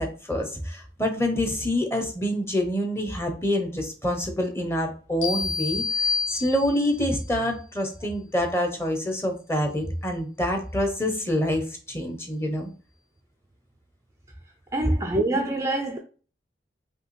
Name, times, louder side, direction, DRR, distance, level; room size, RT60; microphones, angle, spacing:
voice 1, 0.0-12.7, left 1 dB, 15° left, 0.8 m, -26 dB
sound 1, 5.2-7.0, left 5 dB, 90° left, 1.0 m, -28 dB
voice 2, 14.7-16.0, right 2 dB, 15° right, 0.3 m, -25 dB
5.3 x 2.7 x 3.1 m
head